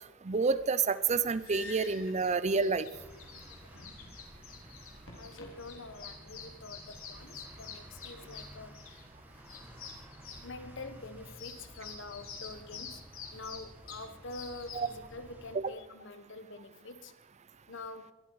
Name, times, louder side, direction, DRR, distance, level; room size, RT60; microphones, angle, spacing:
voice 1, 0.2-2.9 14.7-14.9 15.5-15.7, right 4 dB, 35° right, 15 dB, 0.6 m, -29 dB
sound 1, 1.1-14.9, left 5 dB, 85° left, 3.6 m, -48 dB
sound 2, 2.9-15.6, equal, 10° right, 2.0 m, -53 dB
voice 2, 3.6-4.1 5.2-9.0 10.4-13.0 13.3-17.1 17.7-18.1, left 3 dB, 65° left, 11 dB, 1.3 m, -46 dB
21.5 x 12.5 x 4.8 m, 1.0 s
head